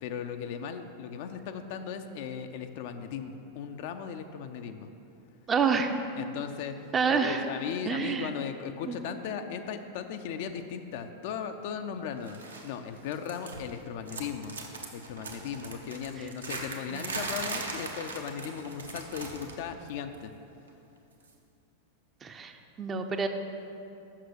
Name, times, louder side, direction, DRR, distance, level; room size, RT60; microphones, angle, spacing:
voice 1, 0.0-4.9 6.2-14.6 14.9-20.3, left 7 dB, 50° left, 7 dB, 0.5 m, -37 dB
voice 2, 5.5-5.9 6.9-7.4 7.9-8.3 8.9-9.0 16.9-17.0 22.2-22.5 22.8-23.3, right 5 dB, 20° right, 6 dB, 0.6 m, -27 dB
sound 1, 12.3-12.7 13.0-13.8 14.0-19.6 19.9-20.1 21.2-21.3, right 3 dB, 75° right, 0.9 m, -39 dB
7.4 x 6.1 x 6.3 m, 2.7 s
figure-of-eight pair, 90°, 0 cm